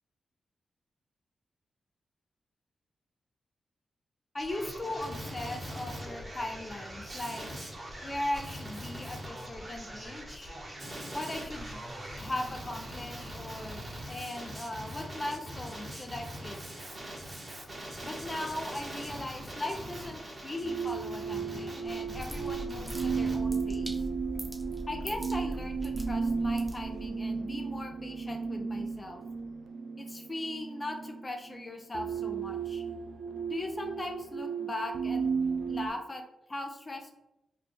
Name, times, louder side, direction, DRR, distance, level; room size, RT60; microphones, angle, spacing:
voice 1, 4.3-7.5 8.0-10.5 11.1-11.9 12.2-16.6 18.0-23.9 24.9-29.2 30.0-32.8 33.5-35.3 35.7-37.1, left 1 dB, 35° left, 4 dB, 0.6 m, -39 dB
Male speech man speaking, 4.4-23.4, equal, 40° right, 1.2 m, -42 dB
sound 1, 20.6-35.9, right 5 dB, 80° right, 0.4 m, -34 dB
sound 2, 21.8-27.2, right 1 dB, 10° right, 1.0 m, -41 dB
3.3 x 2.2 x 4.1 m, 0.89 s
supercardioid pair, 45°, 0 cm